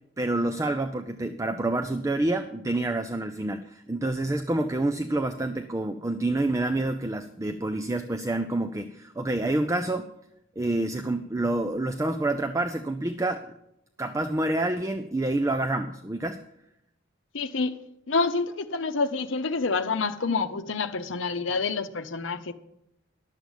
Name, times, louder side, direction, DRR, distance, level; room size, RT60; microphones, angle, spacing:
voice 1, 0.2-10.1 10.6-13.5 14.0-16.4, right 2 dB, 15° right, 0.4 m, -28 dB
voice 2, 17.3-17.8 18.1-22.5, left 4 dB, 75° left, 0.8 m, -27 dB
11.5 x 7.6 x 7.2 m
head